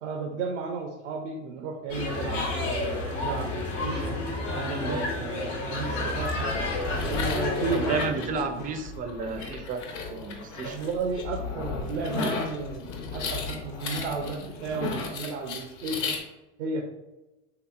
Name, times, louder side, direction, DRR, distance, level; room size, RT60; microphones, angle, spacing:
voice 1, 0.0-4.2 4.5-6.5 7.0-8.0 10.6-16.1 16.6-16.8, right 4 dB, 80° right, 2 dB, 0.5 m, -33 dB
sound 1, 1.9-8.1, left 2 dB, 90° left, 1.1 m, -30 dB
sound 2, 6.1-16.2, left 4 dB, 50° left, 0.9 m, -35 dB
voice 2, 7.7-9.8 10.1-10.8, right 4 dB, 25° right, 7 dB, 0.3 m, -32 dB
3.4 x 2.8 x 2.3 m, 1.0 s
hypercardioid pair, 90°, 36 cm